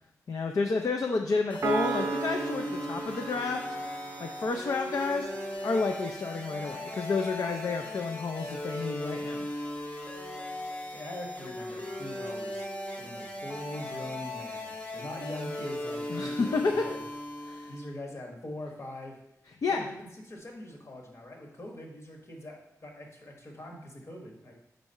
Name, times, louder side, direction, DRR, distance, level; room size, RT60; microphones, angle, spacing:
voice 1, 0.3-3.6 4.2-9.5 16.1-16.9 17.5-17.7 19.6-19.9, left 4 dB, 65° left, 4 dB, 0.4 m, -30 dB
sound 1, 1.5-17.9, left 1 dB, 25° left, 0.7 m, -37 dB
Piano, 1.6-5.2, right 5 dB, 55° right, 0.6 m, -35 dB
voice 2, 10.9-12.7 13.0-17.0 17.5-19.2 19.7-24.5, left 1 dB, 50° left, 1 dB, 1.2 m, -42 dB
4.7 x 4.0 x 5.3 m, 0.83 s
wide cardioid pair, 130°, 6 cm